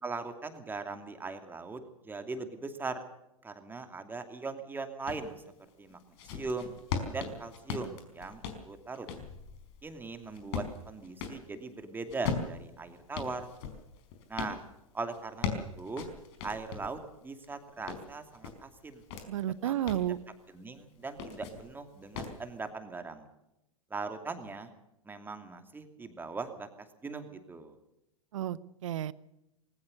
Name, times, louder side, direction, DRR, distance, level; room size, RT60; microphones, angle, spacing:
voice 1, 0.0-3.0 3.4-5.4 5.8-6.0 6.3-6.7 7.1-9.1 9.8-13.5 14.3-14.6 14.9-16.1 16.4-19.0 19.6-19.7 20.5-23.3 23.9-24.7 25.0-26.7 27.0-27.8, right 3 dB, 10° right, 7 dB, 2.7 m, -40 dB
sound 1, 5.1-5.3 5.9-11.4 12.1-14.6 15.1-17.0 17.4-19.3 19.7-20.1 21.0-21.7 22.1-22.4, left 6 dB, 50° left, 4.6 m, -38 dB
voice 2, 19.3-20.2 28.3-29.1, right 12 dB, 60° right, 19 dB, 0.9 m, -32 dB
20.5 x 19.0 x 6.6 m, 0.87 s
figure-of-eight pair, 100°, 18 cm